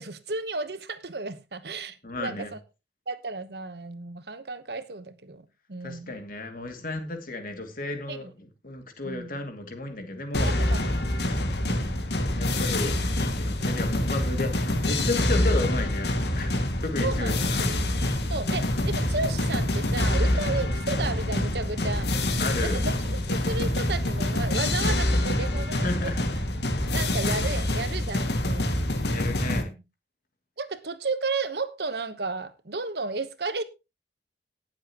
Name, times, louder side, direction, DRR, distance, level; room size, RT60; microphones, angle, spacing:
voice 1, 0.0-2.6 3.1-6.2 8.1-8.3 9.0-9.4 10.4-10.8 11.3-11.9 17.0-17.4 18.3-22.1 22.6-26.1 26.9-28.8 29.4-29.6 30.6-33.6, right 3 dB, 65° right, 1.2 m, -33 dB
voice 2, 2.0-2.5 5.8-10.5 12.4-17.7 22.4-22.8 25.8-26.2 29.1-29.7, left 2 dB, 50° left, 2.6 m, -33 dB
sound 1, 10.3-29.6, left 1 dB, 70° left, 2.1 m, -26 dB
18.5 x 7.5 x 3.0 m
head